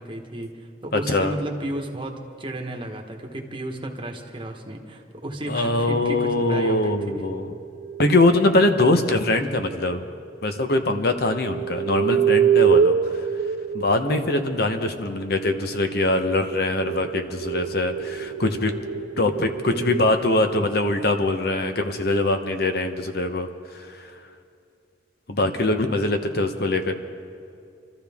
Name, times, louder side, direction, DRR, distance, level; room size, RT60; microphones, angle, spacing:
voice 1, 0.0-7.0, right 1 dB, 30° right, 3 dB, 1.2 m, -33 dB
voice 2, 0.9-1.3 5.5-7.5 8.0-10.0 10.4-13.2 13.7-18.7 19.2-23.5 23.7-24.0 25.3-27.0, left 2 dB, 55° left, 7 dB, 0.9 m, -22 dB
sound 1, 7.5-8.2 9.8-9.9 11.2-14.8 15.8-20.1, right 7 dB, 60° right, 0.3 m, -25 dB
25.5 x 13.5 x 3.6 m, 2.5 s
head